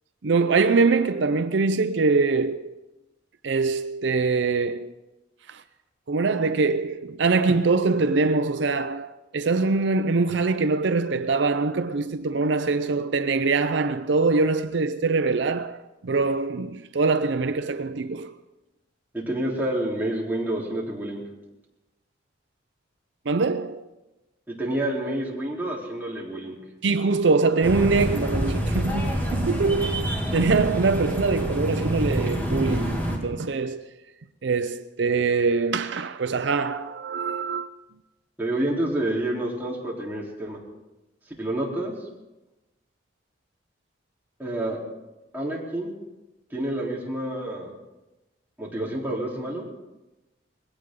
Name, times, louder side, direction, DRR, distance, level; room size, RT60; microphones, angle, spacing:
voice 1, 0.2-2.7 3.4-4.9 5.5-5.6 6.1-18.3 23.3-23.8 26.8-33.8 34.4-37.7, right 4 dB, 70° right, 0.6 m, -23 dB
voice 2, 19.1-21.2 24.5-26.6 38.4-40.6 41.4-41.9 44.4-44.8 45.3-45.9 46.5-47.7 48.6-49.6, right 1 dB, 10° right, 3.6 m, -28 dB
sound 1, 27.6-33.2, equal, 10° left, 2.7 m, -27 dB
20.5 x 17.0 x 3.8 m
head